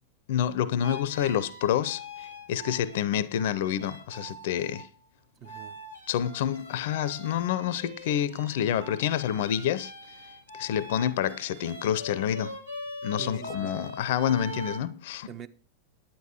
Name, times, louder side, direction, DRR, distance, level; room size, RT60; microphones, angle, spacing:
voice 1, 0.3-4.9 6.1-9.9 10.5-12.6 13.0-15.3, left 10 dB, 55° left, 0.6 m, -28 dB
sound 1, 0.8-4.9 5.4-14.8, left 1 dB, 85° right, 1.9 m, -42 dB
voice 2, 5.4-5.8 8.6-9.2 13.2-13.8 15.3-15.5, right 8 dB, 30° right, 0.9 m, -44 dB
10.0 x 9.2 x 4.4 m
figure-of-eight pair, 90°, 0 cm